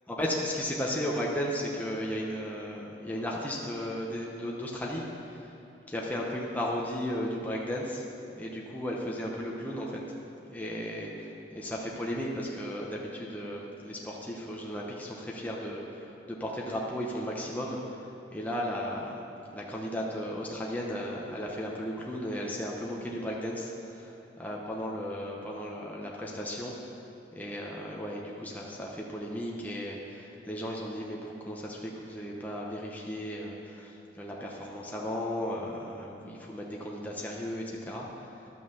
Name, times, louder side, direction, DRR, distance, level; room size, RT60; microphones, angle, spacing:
voice 1, 0.1-5.5 5.9-8.0 8.3-10.0 10.5-19.2 19.5-26.7 27.3-38.5, equal, 10° left, -3 dB, 0.9 m, -35 dB
11.5 x 6.1 x 7.0 m, 2.7 s
head